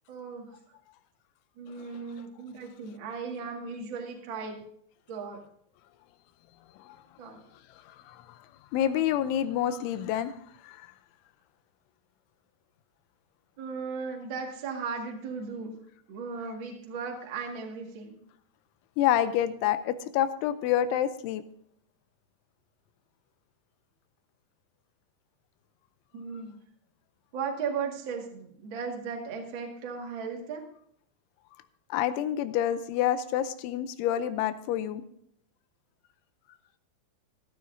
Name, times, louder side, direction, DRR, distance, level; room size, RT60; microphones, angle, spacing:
voice 1, 0.1-0.5 1.6-4.6 5.1-5.4 7.2-7.4 13.6-15.8 16.1-18.2 26.1-26.6 27.3-30.6, right 5 dB, 60° right, 2 dB, 1.3 m, -36 dB
voice 2, 8.7-10.3 10.6-10.8 19.0-21.4 31.9-35.0, left 11 dB, 85° left, 12 dB, 3.1 m, -27 dB
15.0 x 12.5 x 2.7 m, 0.68 s
omnidirectional pair, 5.5 m